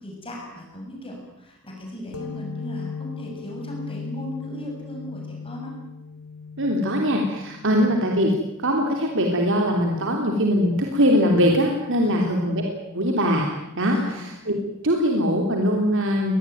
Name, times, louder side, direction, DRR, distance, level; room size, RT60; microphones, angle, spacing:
voice 1, 0.0-5.7 12.0-12.3 13.9-14.2, equal, 25° left, 0 dB, 6.7 m, -37 dB
sound 1, 2.1-9.4, left 5 dB, 75° left, 3.9 m, -38 dB
voice 2, 6.6-8.3 8.6-13.5 13.8-14.6 14.8-16.3, equal, 60° right, 1 dB, 3.3 m, -21 dB
23.5 x 20.0 x 9.3 m, 0.92 s
head